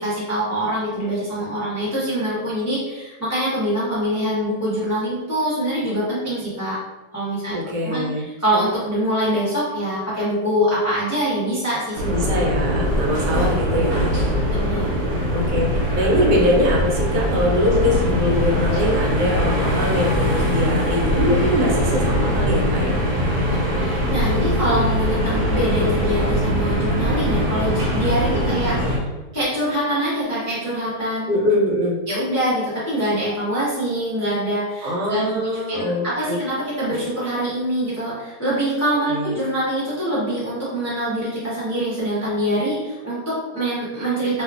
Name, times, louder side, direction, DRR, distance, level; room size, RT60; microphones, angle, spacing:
voice 1, 0.0-6.8 7.1-7.5 7.8-12.1 14.5-14.9 23.8-29.0 29.3-31.3 32.1-44.4, equal, 20° left, -10 dB, 0.5 m, -24 dB
voice 2, 7.5-8.2 12.1-14.1 15.3-23.0 28.3-28.6 31.3-32.0 34.8-36.4 36.9-37.1 39.1-39.3, left 1 dB, 80° right, -1 dB, 1.2 m, -22 dB
sound 1, 11.9-29.0, equal, 65° right, 1.2 m, -21 dB
2.7 x 2.4 x 2.4 m, 1.1 s
omnidirectional pair, 1.8 m